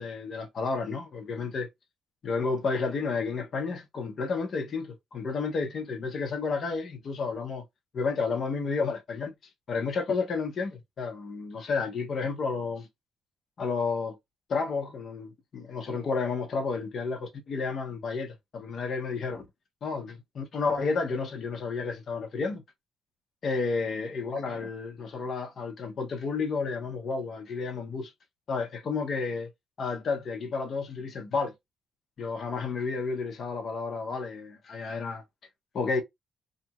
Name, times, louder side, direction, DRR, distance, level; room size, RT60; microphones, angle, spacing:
voice 1, 0.0-1.7 2.2-7.6 7.9-9.3 9.7-12.9 13.6-14.2 14.5-19.5 19.8-22.6 23.4-28.1 28.5-29.5 29.8-31.5 32.2-35.2 35.7-36.0, left 4 dB, 55° left, 0.9 m, -31 dB
2.9 x 2.6 x 2.3 m
cardioid pair, 90°, 0 cm